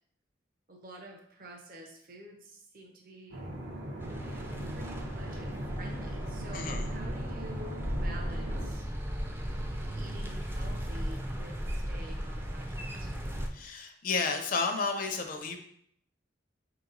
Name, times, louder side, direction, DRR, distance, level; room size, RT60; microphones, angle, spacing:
voice 1, 0.7-3.5 4.2-8.9 9.9-13.1, right 1 dB, 50° right, 1 dB, 0.8 m, -49 dB
sound 1, 3.3-8.7, right 1 dB, 75° right, 1.0 m, -40 dB
sound 2, 4.0-13.5, equal, 10° right, 0.4 m, -36 dB
voice 2, 6.5-6.9 13.5-15.6, left 4 dB, 45° left, 5 dB, 0.5 m, -32 dB
4.6 x 2.9 x 3.8 m, 0.69 s
head